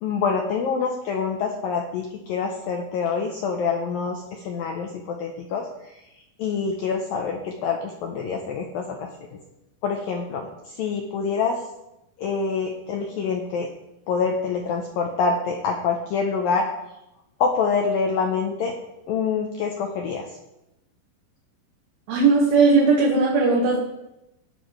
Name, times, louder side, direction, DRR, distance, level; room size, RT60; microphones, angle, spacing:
voice 1, 0.0-6.0 6.4-9.1 9.8-11.6 12.2-13.7 14.1-16.7 17.4-18.7 19.1-20.2, left 5 dB, 75° left, 1 dB, 2.1 m, -26 dB
voice 2, 22.1-23.8, right 4 dB, 80° right, -3 dB, 4.2 m, -18 dB
20.5 x 8.6 x 3.3 m, 0.89 s
omnidirectional pair, 5.3 m